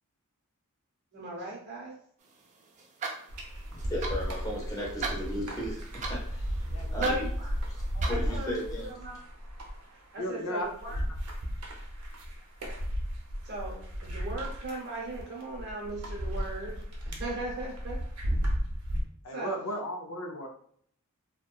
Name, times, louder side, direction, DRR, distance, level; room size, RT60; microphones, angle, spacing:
voice 1, 1.1-2.0 7.0-7.5 8.1-9.2 9.9-11.0 13.4-18.0 19.3-19.6, right 2 dB, 50° right, -2 dB, 0.8 m, -37 dB
sound 1, 2.2-8.9, right 4 dB, 35° right, 0.4 m, -42 dB
sound 2, 3.3-19.0, equal, 85° right, 0.6 m, -34 dB
voice 2, 3.7-5.8 6.1-6.5 6.9-7.1 8.1-8.9, equal, 15° left, -3 dB, 0.6 m, -35 dB
voice 3, 4.8-5.2 6.7-7.1 7.9-8.4 10.2-10.7 19.2-20.5, equal, 70° left, 3 dB, 0.4 m, -36 dB
2.7 x 2.2 x 2.2 m, 0.62 s
head